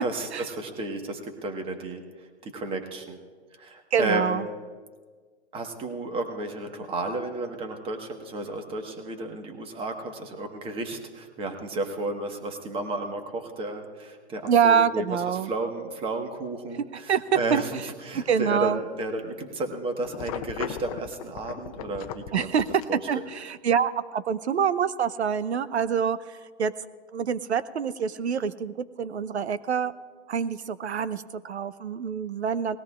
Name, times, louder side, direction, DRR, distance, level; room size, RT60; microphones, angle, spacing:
voice 1, 0.0-3.2 3.6-4.5 5.5-22.5 22.9-23.2, right 2 dB, 15° right, 5 dB, 1.4 m, -33 dB
voice 2, 3.9-4.4 14.5-15.5 16.9-17.6 18.1-18.8 22.3-22.7 23.1-26.7 27.1-29.9 30.3-32.8, right 7 dB, 75° right, 14 dB, 0.8 m, -26 dB
sound 1, 20.0-22.8, left 11 dB, 35° left, 0.6 m, -37 dB
20.0 x 17.0 x 2.4 m, 1.5 s
hypercardioid pair, 130°, 33 cm